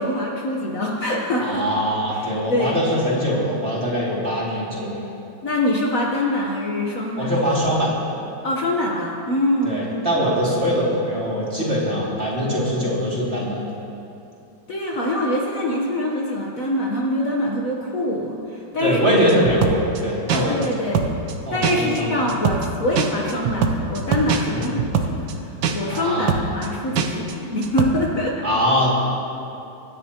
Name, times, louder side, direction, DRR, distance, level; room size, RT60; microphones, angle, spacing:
voice 1, 0.0-1.6 2.1-2.9 5.4-7.3 8.4-9.8 14.7-19.4 20.3-21.1 21.5-28.4, left 1 dB, 50° left, -2 dB, 1.3 m, -24 dB
voice 2, 1.4-5.1 7.2-8.0 9.6-13.6 18.8-20.6 21.5-22.2 24.5-24.7 25.9-26.3 28.4-28.9, equal, 35° right, -6 dB, 2.7 m, -22 dB
sound 1, 19.3-20.0 20.3-20.7 20.9-21.3 21.6-22.0 22.3-22.7 22.9-25.3 25.6-26.0 26.3-26.7 26.9-27.3 27.6-27.9, right 7 dB, 80° right, 1.5 m, -23 dB
24.5 x 10.0 x 2.9 m, 2.8 s
omnidirectional pair, 2.1 m